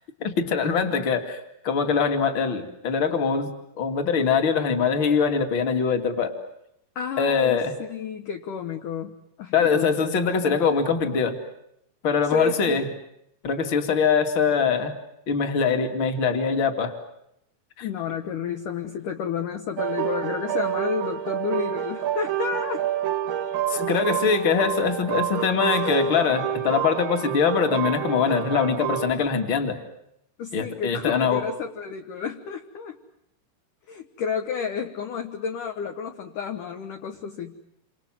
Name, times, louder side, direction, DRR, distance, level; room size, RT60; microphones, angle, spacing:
voice 1, 0.2-6.3 7.2-7.7 9.5-11.4 12.0-12.8 13.4-14.9 15.3-16.9 17.8-17.9 23.7-29.8 30.5-31.5, left 6 dB, 35° left, 6 dB, 2.3 m, -23 dB
voice 2, 7.0-10.1 12.3-12.9 17.8-22.9 23.7-23.9 25.6-26.2 30.4-33.0 33.9-37.6, left 6 dB, 65° left, 4 dB, 2.2 m, -31 dB
sound 1, 19.8-29.1, right 11 dB, 65° right, 2.5 m, -28 dB
29.0 x 26.5 x 7.5 m, 0.76 s
omnidirectional pair, 5.6 m